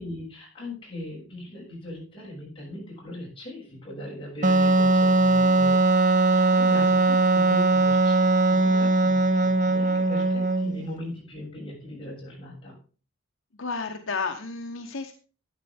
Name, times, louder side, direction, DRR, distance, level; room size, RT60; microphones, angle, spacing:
voice 1, 0.0-12.8, left 1 dB, 25° left, -4 dB, 7.1 m, -39 dB
Wind instrument woodwind instrument, 4.4-10.9, right 3 dB, 40° right, 0.7 m, -20 dB
voice 2, 6.5-6.9 13.6-15.1, left 4 dB, 70° left, 3 dB, 1.1 m, -32 dB
12.0 x 9.6 x 3.6 m, 0.37 s
head